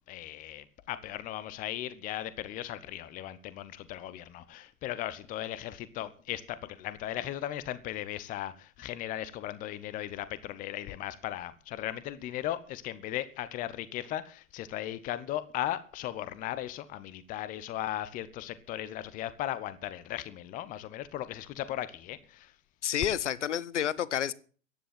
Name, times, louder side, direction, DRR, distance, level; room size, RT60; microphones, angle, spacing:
voice 1, 0.1-22.5, left 13 dB, 20° left, 0.9 m, -37 dB
voice 2, 22.8-24.3, left 10 dB, 60° left, 1.1 m, -29 dB
15.0 x 10.5 x 7.6 m
figure-of-eight pair, 105°, 39 cm